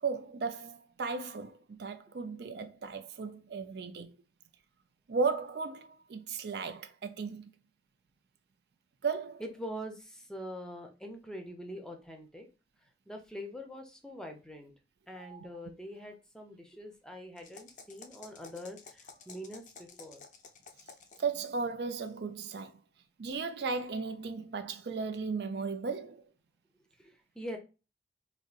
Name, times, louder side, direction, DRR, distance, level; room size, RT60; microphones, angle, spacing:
voice 1, 0.0-4.1 5.1-7.5 9.0-9.4 15.2-15.5 21.2-22.8 23.2-26.2, right 4 dB, 60° right, 0.4 m, -35 dB
voice 2, 9.4-12.5 13.1-14.7 15.1-20.2 27.0-27.6, equal, 5° left, 0.6 m, -44 dB
sound 1, 17.4-21.4, left 5 dB, 45° left, 0.5 m, -52 dB
4.2 x 2.6 x 2.4 m
head